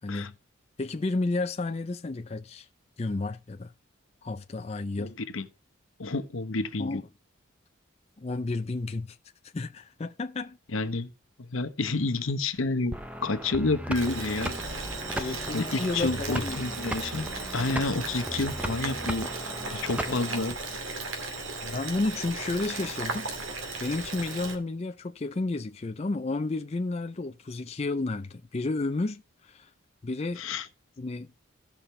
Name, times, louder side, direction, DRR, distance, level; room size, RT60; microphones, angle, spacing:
voice 1, 0.0-0.3 0.8-2.7 3.0-3.7 4.2-5.1 6.8-7.0 8.2-9.2 9.5-10.6 15.1-16.6 20.1-20.2 21.6-29.7 30.0-30.4 31.0-31.3, left 2 dB, 30° left, 0.4 m, -32 dB
voice 2, 5.0-5.5 6.0-7.0 10.7-11.1 11.4-13.0 13.2-14.6 15.1-17.3 17.5-19.3 19.7-20.6 30.4-30.7, left 3 dB, 75° left, 1.0 m, -29 dB
sound 1, 12.9-20.5, right 1 dB, 5° right, 0.7 m, -37 dB
Boiling, 13.9-24.6, right 3 dB, 75° right, 2.2 m, -36 dB
16.0 x 5.7 x 3.2 m
head